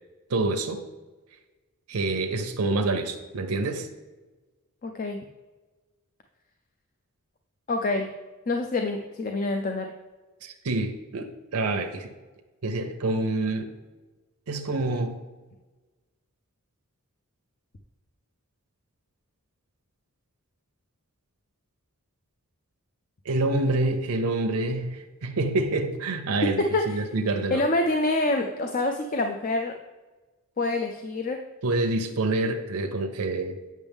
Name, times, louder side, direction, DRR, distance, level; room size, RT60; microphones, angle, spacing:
voice 1, 0.3-0.8 1.9-3.9 10.4-12.1 12.6-13.7 14.5-15.2 23.2-27.6 31.6-33.6, right 2 dB, 85° right, 4 dB, 0.7 m, -27 dB
voice 2, 4.8-5.2 7.7-8.1 8.5-9.9 26.4-27.0 27.5-29.7 30.6-31.4, left 2 dB, 40° left, 5 dB, 0.5 m, -26 dB
8.3 x 6.1 x 3.5 m, 1.2 s
head